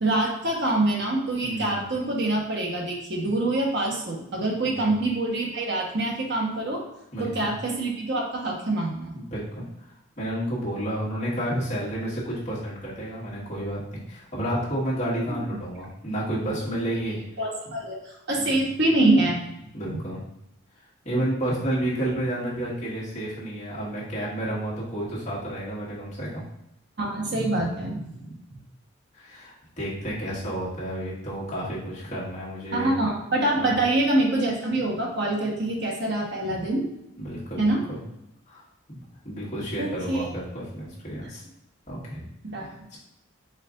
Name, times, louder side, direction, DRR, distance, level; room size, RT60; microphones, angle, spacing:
voice 1, 0.0-6.8 7.2-9.2 17.4-19.4 19.9-20.0 27.0-28.1 32.7-36.8 37.6-37.8 39.8-40.3 42.4-42.7, right 2 dB, 55° right, -1 dB, 1.0 m, -25 dB
voice 2, 1.4-1.8 4.6-4.9 7.1-7.5 9.1-9.6 10.2-17.2 18.4-18.6 19.7-20.2 21.0-26.4 28.2-28.3 29.1-32.9 33.5-33.7 37.2-38.0 38.5-38.6 38.9-41.4 41.9-42.2 42.6-43.0, right 1 dB, 35° left, -8 dB, 1.6 m, -31 dB
4.5 x 2.5 x 3.7 m, 0.85 s
head